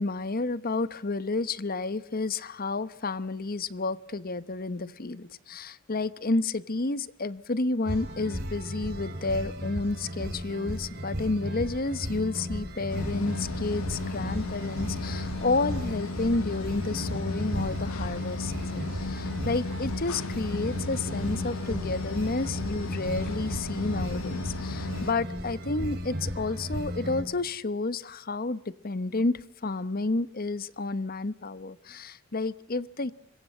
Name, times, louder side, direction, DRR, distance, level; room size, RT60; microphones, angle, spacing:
voice 1, 0.0-33.1, left 3 dB, 45° left, 17 dB, 1.0 m, -31 dB
sound 1, 7.8-27.2, equal, 50° right, 5.5 m, -35 dB
sound 2, 12.9-25.1, left 3 dB, 80° left, 1.0 m, -35 dB
26.0 x 22.5 x 7.4 m, 0.72 s
head